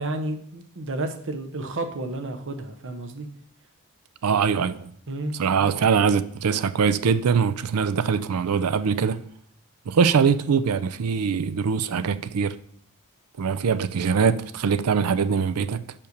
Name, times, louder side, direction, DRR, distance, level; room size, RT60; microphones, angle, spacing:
voice 1, 0.0-3.3 5.1-5.7, right 2 dB, 60° right, 0.9 m, -31 dB
voice 2, 4.2-4.9 5.4-9.2 9.9-12.5 13.4-15.8, right 6 dB, 85° right, 0.5 m, -22 dB
5.6 x 5.2 x 6.5 m
head